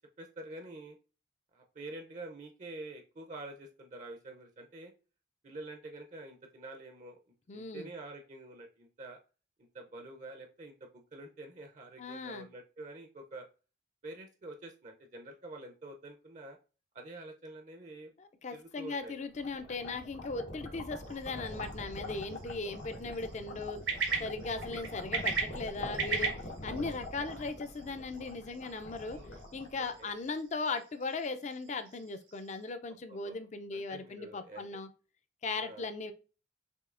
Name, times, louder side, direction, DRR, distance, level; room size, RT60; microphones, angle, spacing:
voice 1, 0.2-1.0 1.5-4.9 5.4-7.2 7.5-9.2 9.6-13.5 14.0-16.6 16.9-18.1 18.5-19.2 19.6-19.7 22.2-22.5 25.0-25.1 29.1-29.3 30.0-30.1 33.1-33.3 33.7-34.7 35.5-35.9, right 2 dB, 40° right, 4 dB, 0.5 m, -47 dB
voice 2, 7.5-7.9 12.0-12.5 18.2-23.8 24.2-26.4 26.6-29.2 29.5-34.9 35.4-36.1, left 3 dB, 40° left, 10 dB, 0.4 m, -38 dB
sound 1, 19.1-30.2, left 1 dB, 85° left, 1.3 m, -44 dB
sound 2, 21.0-32.7, right 4 dB, 90° right, 1.4 m, -40 dB
6.3 x 2.8 x 2.5 m, 0.34 s
head